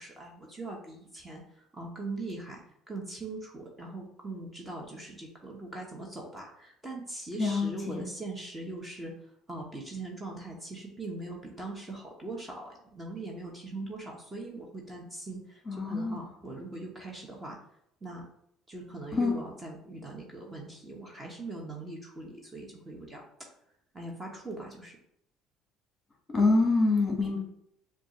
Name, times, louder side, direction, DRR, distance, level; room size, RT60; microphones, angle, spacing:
voice 1, 0.0-1.4 1.7-2.6 2.9-9.1 9.5-15.6 15.9-17.6 18.0-18.2 18.7-23.2 23.9-25.0, right 2 dB, 20° right, -1 dB, 0.9 m, -41 dB
voice 2, 7.4-8.0 15.7-16.2 19.1-19.4 26.3-27.4, left 3 dB, 20° left, 0 dB, 1.2 m, -26 dB
6.8 x 2.4 x 3.0 m, 0.73 s
cardioid pair, 120°, 0 cm